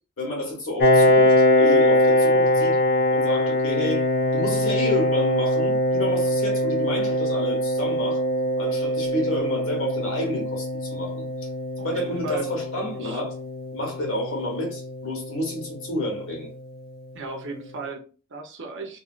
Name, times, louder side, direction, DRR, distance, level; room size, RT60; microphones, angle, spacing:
voice 1, 0.2-2.8 3.1-8.2 8.6-11.5 11.8-13.4 13.7-16.5, left 1 dB, 65° left, 1.4 m, -30 dB
Piano, 0.8-16.2, equal, 45° left, 0.5 m, -22 dB
voice 2, 11.8-12.5 12.9-13.2 17.1-19.0, right 2 dB, 55° right, 0.7 m, -36 dB
3.1 x 2.7 x 2.4 m
head